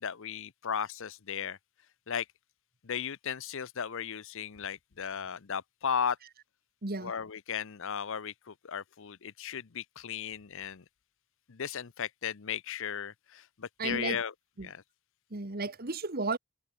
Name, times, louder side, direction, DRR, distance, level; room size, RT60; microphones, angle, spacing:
voice 1, 0.0-1.6 2.1-2.3 2.8-6.2 7.0-10.8 11.5-14.3 14.6-14.8, left 7 dB, 60° left, 0.7 m, -36 dB
voice 2, 6.8-7.1 13.8-14.2 14.6-14.7 15.3-16.4, right 3 dB, 45° right, 1.6 m, -33 dB
head